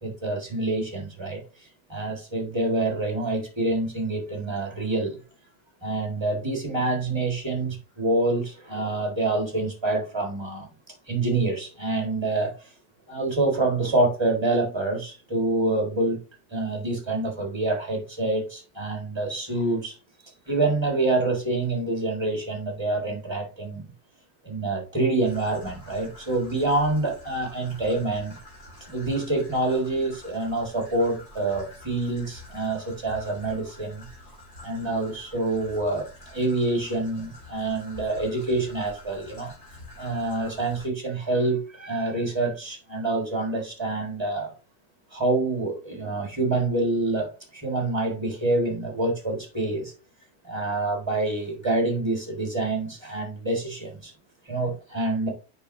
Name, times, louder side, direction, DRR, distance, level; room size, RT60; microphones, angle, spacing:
voice 1, 0.0-5.2 5.8-10.7 11.1-12.7 13.1-16.2 16.5-20.0 20.5-23.9 24.4-28.3 28.9-34.1 34.6-39.5 40.0-44.5 45.1-49.9 50.4-54.1 54.4-55.3, right 2 dB, 15° right, 1.5 m, -26 dB
Traffic noise roadway noise / Trickle dribble, 25.2-40.9, left 1 dB, 45° left, 3.4 m, -47 dB
6.9 x 5.4 x 2.6 m
omnidirectional pair, 1.9 m